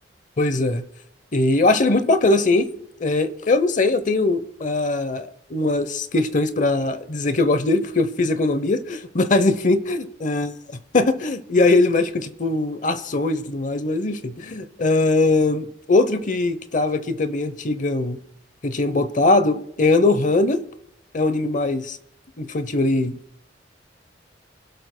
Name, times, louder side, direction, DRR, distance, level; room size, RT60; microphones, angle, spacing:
voice 1, 0.4-0.9 1.3-2.7 3.0-10.5 10.9-18.2 18.6-20.6 21.1-22.0 22.4-23.2, left 2 dB, 45° left, 0.8 m, -21 dB
29.5 x 11.5 x 2.2 m
head